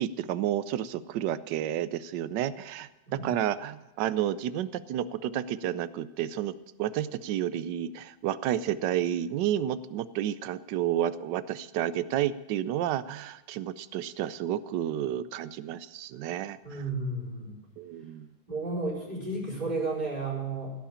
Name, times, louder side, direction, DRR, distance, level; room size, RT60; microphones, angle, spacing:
voice 1, 0.0-6.5 6.8-16.6 17.8-18.3, right 11 dB, 85° right, 15 dB, 1.3 m, -31 dB
voice 2, 16.6-17.6 18.5-20.7, right 2 dB, 25° right, -6 dB, 4.8 m, -32 dB
16.0 x 5.8 x 8.7 m, 0.99 s
omnidirectional pair, 1.8 m